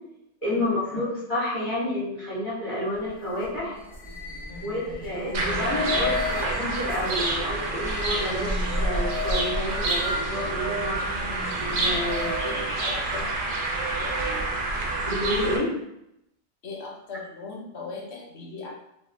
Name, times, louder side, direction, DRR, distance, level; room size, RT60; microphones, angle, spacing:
voice 1, 0.4-3.8 4.6-11.0 11.7-13.0 15.1-15.8, left 1 dB, 50° left, -9 dB, 1.7 m, -30 dB
sound 1, 2.8-12.6, left 4 dB, 15° left, 0.3 m, -35 dB
voice 2, 4.5-4.8 12.2-12.6 13.1-13.2 14.0-14.4 16.6-18.7, left 4 dB, 85° left, -2 dB, 1.1 m, -39 dB
sound 2, 5.3-15.6, right 2 dB, 60° right, 0.7 m, -28 dB
3.3 x 2.4 x 2.5 m, 0.81 s
omnidirectional pair, 1.1 m